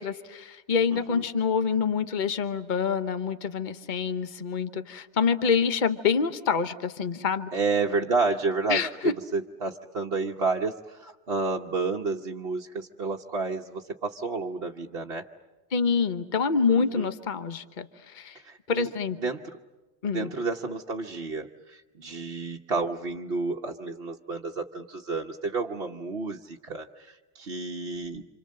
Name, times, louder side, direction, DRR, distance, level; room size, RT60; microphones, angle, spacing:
voice 1, 0.0-7.5 8.7-9.1 15.7-18.4 18.7-19.2 20.0-20.3, left 5 dB, 45° left, 11 dB, 1.2 m, -26 dB
voice 2, 0.9-1.2 7.5-15.2 16.7-17.1 18.3-18.9 19.2-19.6 20.0-28.3, right 3 dB, 60° right, -1 dB, 1.3 m, -31 dB
28.5 x 27.0 x 7.6 m, 1.1 s
omnidirectional pair, 1.2 m